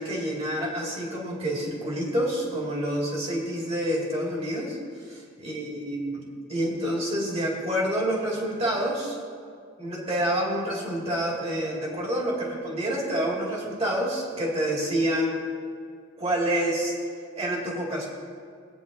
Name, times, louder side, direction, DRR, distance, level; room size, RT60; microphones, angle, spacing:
voice 1, 0.0-4.8 5.0-6.2 6.5-9.2 9.8-15.4 16.2-16.9 17.4-18.1, right 1 dB, 30° right, -4 dB, 2.3 m, -28 dB
19.5 x 9.5 x 2.7 m, 2.2 s
head